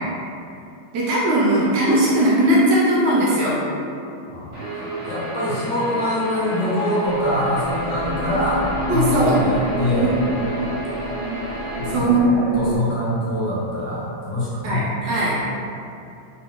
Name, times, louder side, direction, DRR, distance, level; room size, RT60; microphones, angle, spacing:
voice 1, 0.9-3.6 8.9-9.4 10.0-10.4 11.9-12.4 14.6-15.3, right 1 dB, 75° right, -5 dB, 1.1 m, -19 dB
voice 2, 4.3-10.1 11.8-12.1 12.5-15.4, left 1 dB, 70° left, -7 dB, 1.4 m, -24 dB
Guitar, 4.5-11.9, right 2 dB, 50° right, 1.3 m, -31 dB
sound 1, 7.0-12.8, equal, 25° left, 0.8 m, -29 dB
3.8 x 2.6 x 2.9 m, 2.6 s
omnidirectional pair, 2.2 m